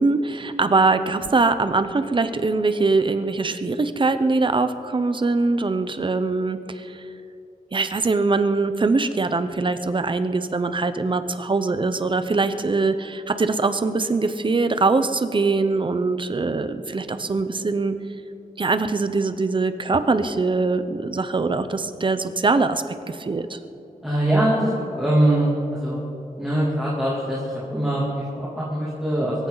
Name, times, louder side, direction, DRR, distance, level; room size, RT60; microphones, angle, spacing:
voice 1, 0.0-7.0 7.7-17.9 18.6-23.6, right 3 dB, 35° right, 10 dB, 0.8 m, -22 dB
voice 2, 24.0-25.5 25.8-26.0 26.4-29.5, right 1 dB, 5° right, -7 dB, 2.8 m, -22 dB
23.5 x 14.5 x 4.0 m, 3.0 s
wide cardioid pair, 150°, 15 cm